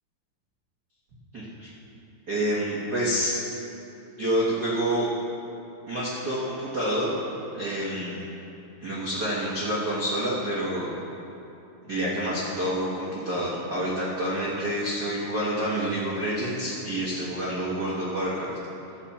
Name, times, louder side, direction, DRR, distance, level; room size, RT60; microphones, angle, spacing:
voice 1, 1.3-1.7 2.3-3.3 4.2-5.1 5.9-7.2 7.5-8.2 8.8-10.9 11.9-18.5, right 1 dB, 70° right, -8 dB, 0.9 m, -28 dB
13.0 x 8.4 x 4.3 m, 2.9 s
omnidirectional pair, 4.4 m